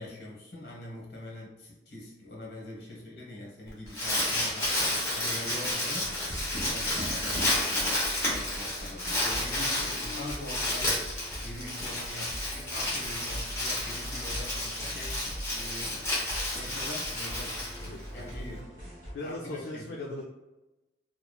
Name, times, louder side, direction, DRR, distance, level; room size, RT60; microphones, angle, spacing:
voice 1, 0.0-6.2 6.6-16.1 16.5-17.7 18.1-18.7 19.2-19.8, left 1 dB, 65° left, -4 dB, 1.0 m, -43 dB
Crumpling crinkling, 3.7-18.3, left 1 dB, 15° left, 0.9 m, -31 dB
sound 1, 5.9-19.1, equal, 15° right, 1.2 m, -42 dB
Tap, 6.0-7.7 9.7-10.5, equal, 60° right, 0.9 m, -41 dB
voice 2, 17.8-18.8 19.1-20.2, left 2 dB, 80° left, -2 dB, 0.4 m, -40 dB
3.0 x 2.3 x 2.2 m, 1.0 s
head